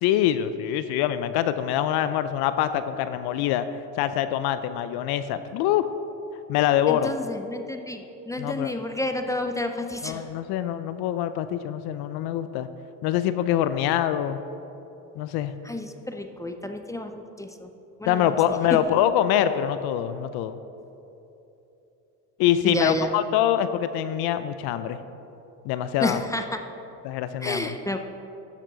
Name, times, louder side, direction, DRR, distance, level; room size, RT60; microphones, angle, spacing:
voice 1, 0.0-3.7 4.0-5.9 6.5-7.1 8.4-8.7 10.0-12.7 13.0-14.4 15.2-15.5 18.1-20.6 22.4-25.0 25.6-26.2 27.0-27.6, left 11 dB, 60° left, 12 dB, 0.6 m, -24 dB
voice 2, 6.9-10.2 15.6-17.7 18.0-18.8 22.6-23.1 26.0-26.6 27.4-28.0, left 1 dB, 10° left, 6 dB, 0.5 m, -30 dB
13.0 x 7.3 x 3.9 m, 2.9 s
supercardioid pair, 95°, 44 cm